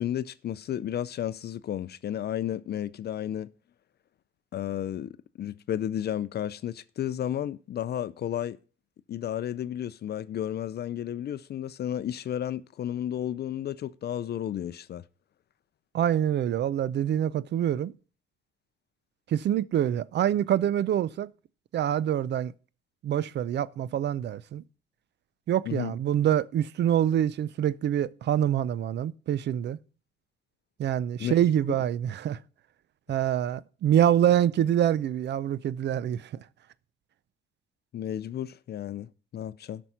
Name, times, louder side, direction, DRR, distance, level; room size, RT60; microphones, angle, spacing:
voice 1, 0.0-3.5 4.5-8.6 9.1-15.0 25.7-25.9 31.2-31.4 37.9-39.8, left 10 dB, 55° left, 0.5 m, -32 dB
voice 2, 15.9-17.9 19.3-21.3 21.7-22.5 23.0-24.6 25.5-29.8 30.8-32.4 33.1-36.4, right 10 dB, 60° right, 0.5 m, -25 dB
12.5 x 6.2 x 5.6 m
cardioid pair, 90°, 20 cm